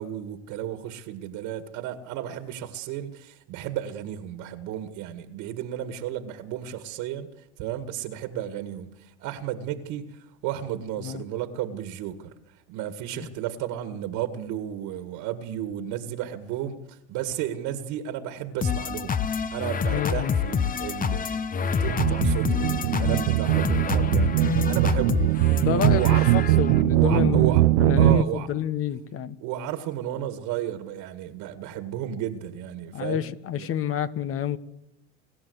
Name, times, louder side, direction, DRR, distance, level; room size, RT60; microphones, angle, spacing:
voice 1, 0.0-19.2 19.5-26.3 26.9-27.6 28.0-28.5 29.4-33.7, right 11 dB, 60° right, 1.9 m, -33 dB
sound 1, 18.6-26.8, left 7 dB, 25° left, 1.0 m, -27 dB
voice 2, 19.9-20.4 25.6-26.0 26.3-29.4 32.9-34.6, left 9 dB, 40° left, 1.4 m, -28 dB
sound 2, 21.8-28.2, right 18 dB, 80° right, 0.7 m, -21 dB
25.0 x 13.5 x 8.1 m
supercardioid pair, 100°, 35 cm